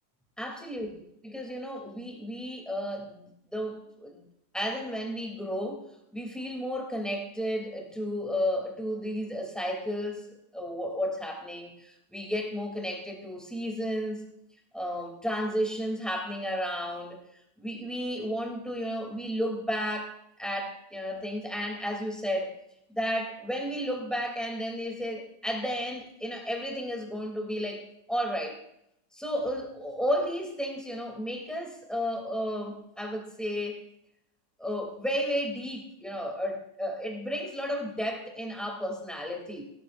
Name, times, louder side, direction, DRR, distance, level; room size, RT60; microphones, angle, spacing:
voice 1, 0.4-0.9 1.2-4.2 4.5-5.9 6.1-14.2 14.7-17.2 17.6-22.6 22.9-28.6 29.1-33.8 34.6-39.6, equal, ahead, 1 dB, 2.9 m, -33 dB
17.0 x 15.0 x 2.6 m, 0.77 s
omnidirectional pair, 1.7 m